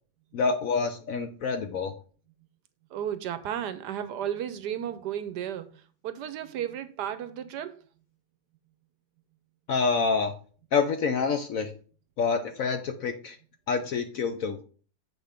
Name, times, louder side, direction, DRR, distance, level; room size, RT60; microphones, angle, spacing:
voice 1, 0.3-1.9 9.7-10.3 10.7-11.7 12.2-13.4 13.7-14.6, left 5 dB, 65° left, 0.9 m, -27 dB
voice 2, 2.9-7.8, right 10 dB, 70° right, 1.1 m, -34 dB
8.0 x 4.4 x 5.0 m
omnidirectional pair, 2.0 m